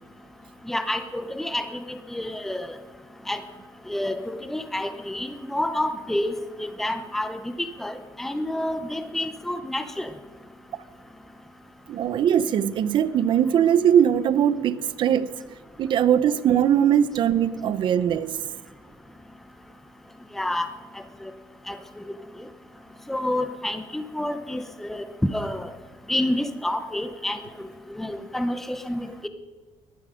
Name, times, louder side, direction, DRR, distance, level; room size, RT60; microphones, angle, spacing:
voice 1, 0.7-2.7 3.3-3.4 3.9-10.1 20.3-20.7 21.2-21.3 21.7-22.2 23.1-25.0 25.3-25.7 26.1-27.7 27.9-29.3, left 1 dB, 5° left, 8 dB, 0.8 m, -29 dB
voice 2, 11.9-15.3 15.8-18.4, right 9 dB, 50° right, 15 dB, 0.7 m, -21 dB
19.0 x 11.5 x 5.1 m, 1.4 s
cardioid pair, 150°, 10 cm